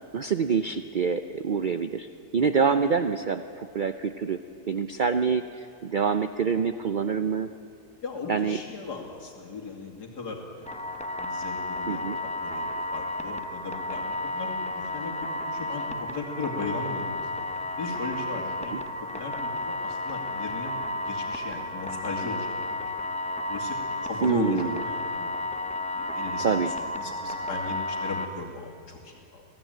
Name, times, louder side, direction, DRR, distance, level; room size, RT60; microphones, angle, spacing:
voice 1, 0.1-2.1 2.3-4.4 4.7-7.5 8.3-8.6 11.9-12.2 18.7-18.8 24.2-24.7 26.4-26.7, right 6 dB, 60° right, 9 dB, 0.5 m, -26 dB
voice 2, 8.0-17.5 17.8-18.8 19.1-22.5 22.8-22.9 23.5-25.3 25.7-29.4, left 3 dB, 85° left, 0 dB, 3.1 m, -37 dB
sound 1, 10.7-28.3, left 1 dB, 10° left, 0.5 m, -32 dB
26.5 x 17.0 x 9.1 m, 2.6 s
omnidirectional pair, 1.7 m